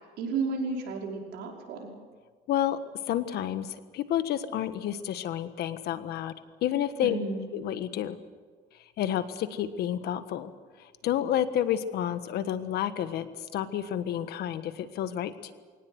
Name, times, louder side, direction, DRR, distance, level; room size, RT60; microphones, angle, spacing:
voice 1, 0.2-1.9 7.0-7.5, right 4 dB, 80° right, 0 dB, 5.4 m, -32 dB
voice 2, 2.5-2.8 3.1-6.3 6.6-7.2 7.5-8.2 9.0-10.5 10.8-13.3 13.5-15.5, left 11 dB, 75° left, 11 dB, 1.5 m, -30 dB
22.5 x 18.5 x 8.0 m, 1.5 s
cardioid pair, 110°, 17 cm